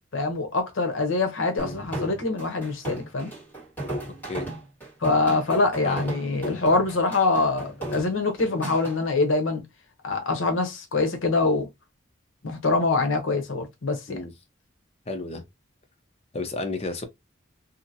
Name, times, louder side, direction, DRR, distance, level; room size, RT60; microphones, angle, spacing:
voice 1, 0.1-3.3 5.0-9.6 10.0-11.7 12.4-14.2, left 3 dB, 75° left, 0.8 m, -24 dB
sound 1, 1.6-9.0, right 1 dB, 10° left, 1.7 m, -35 dB
voice 2, 4.0-4.5 5.5-6.1 14.1-14.3 15.1-15.4 16.3-17.1, left 2 dB, 30° left, 0.6 m, -33 dB
2.8 x 2.5 x 2.6 m
head